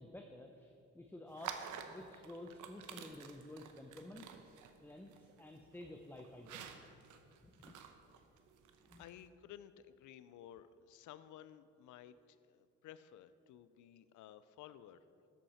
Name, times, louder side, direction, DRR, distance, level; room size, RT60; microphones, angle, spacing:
voice 1, 0.0-4.4 4.8-6.9 7.4-7.7 8.8-9.1, left 1 dB, 5° left, 4 dB, 0.7 m, -52 dB
sound 1, 1.3-9.3, right 7 dB, 80° right, 0.9 m, -51 dB
voice 2, 9.0-15.0, left 11 dB, 80° left, 14 dB, 0.6 m, -55 dB
13.0 x 8.4 x 4.3 m, 2.6 s
cardioid pair, 90°, 30 cm